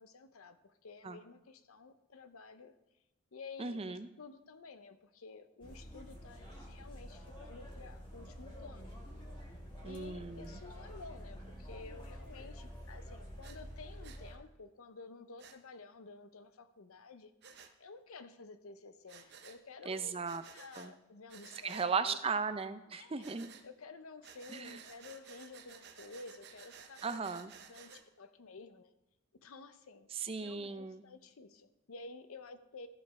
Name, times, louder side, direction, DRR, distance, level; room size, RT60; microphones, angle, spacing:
voice 1, 0.0-2.7 3.3-8.9 9.8-17.3 17.8-20.2 20.5-22.2 22.9-23.3 23.6-27.0 27.7-27.9 28.2-28.9 29.4-32.9, left 3 dB, 85° left, 11 dB, 0.7 m, -52 dB
voice 2, 3.6-4.1 9.8-10.6 19.9-20.4 20.8-20.9 21.6-23.5 24.5-24.8 27.0-27.5 30.1-31.0, right 5 dB, 25° right, 11 dB, 0.4 m, -37 dB
sound 1, 5.6-14.4, equal, 20° left, 1.7 m, -48 dB
Breathing, 13.4-13.6 14.0-14.2 15.4-15.6 17.4-17.7 19.1-19.6 20.2-20.9 21.3-21.9 23.2-23.7 24.2-28.0, right 6 dB, 50° right, 0.8 m, -55 dB
14.0 x 5.2 x 4.8 m, 0.92 s
head